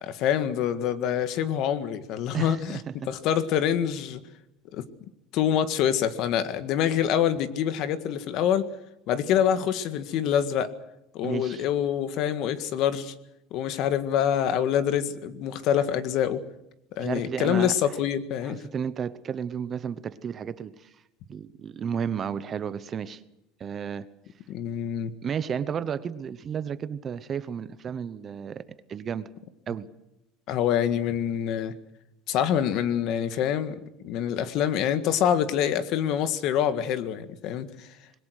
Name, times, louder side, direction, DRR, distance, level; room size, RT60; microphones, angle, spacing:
voice 1, 0.0-4.2 4.7-4.8 5.3-8.7 9.1-10.7 11.1-13.1 13.5-16.4 17.0-18.6 24.5-25.1 30.5-31.7 32.3-37.9, left 9 dB, 50° left, 12 dB, 1.8 m, -26 dB
voice 2, 2.3-2.9 11.2-11.7 17.0-18.0 18.4-20.9 21.3-23.2 23.6-24.1 25.2-28.6 28.9-29.3 29.7-29.9, right 7 dB, 25° right, 15 dB, 0.9 m, -32 dB
26.0 x 21.5 x 6.5 m, 0.87 s
cardioid pair, 160°, 0 cm